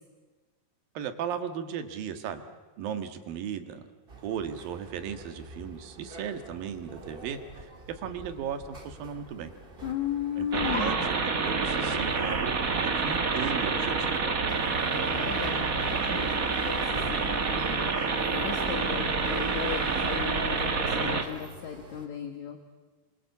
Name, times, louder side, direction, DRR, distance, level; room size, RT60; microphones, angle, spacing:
voice 1, 0.9-2.4 2.8-3.9 4.2-9.5 10.4-11.2 11.4-14.6, right 8 dB, 75° right, 8 dB, 3.4 m, -36 dB
sound 1, 4.1-22.1, right 1 dB, 20° right, 2.0 m, -45 dB
voice 2, 9.8-11.1 15.1-22.7, left 9 dB, 60° left, 5 dB, 2.8 m, -36 dB
sound 2, 10.5-21.2, right 4 dB, 35° right, 1.4 m, -28 dB
28.0 x 24.0 x 8.3 m, 1.3 s
omnidirectional pair, 4.1 m